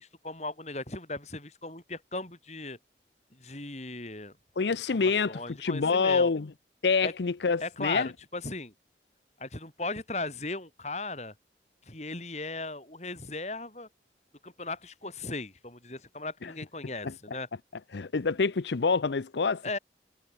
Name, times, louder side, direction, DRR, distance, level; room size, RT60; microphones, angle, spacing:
voice 1, 0.0-2.8 3.3-4.3 4.9-6.3 7.0-7.1 7.6-8.7 9.4-11.3 11.9-13.9 14.4-17.5 19.6-19.8, left 2 dB, 40° left, 5.7 m, -37 dB
voice 2, 4.6-6.5 6.8-8.1 16.4-16.5 17.0-17.1 17.9-19.6, left 4 dB, 80° left, 0.6 m, -26 dB
head